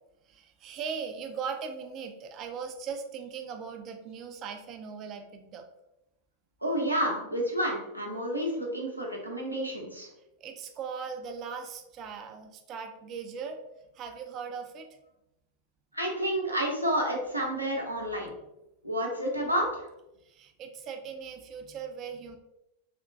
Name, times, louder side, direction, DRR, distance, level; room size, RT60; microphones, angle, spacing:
voice 1, 0.3-5.6 10.4-13.6 13.9-14.9 20.2-22.4, right 6 dB, 35° right, 5 dB, 0.4 m, -39 dB
voice 2, 6.6-10.1 15.9-18.3 18.8-19.9, equal, 90° right, -2 dB, 0.7 m, -30 dB
3.3 x 2.1 x 2.6 m, 0.91 s
figure-of-eight pair, 90°, 0 cm